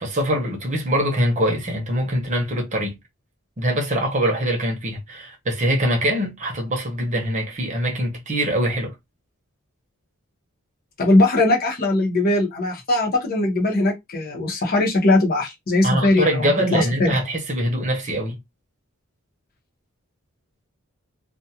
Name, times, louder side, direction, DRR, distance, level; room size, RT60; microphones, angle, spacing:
voice 1, 0.0-3.0 3.6-8.9 15.8-18.4, equal, 35° right, 0.8 m, -23 dB
voice 2, 11.0-17.1, left 2 dB, 45° left, 0.9 m, -20 dB
2.4 x 2.3 x 2.8 m
head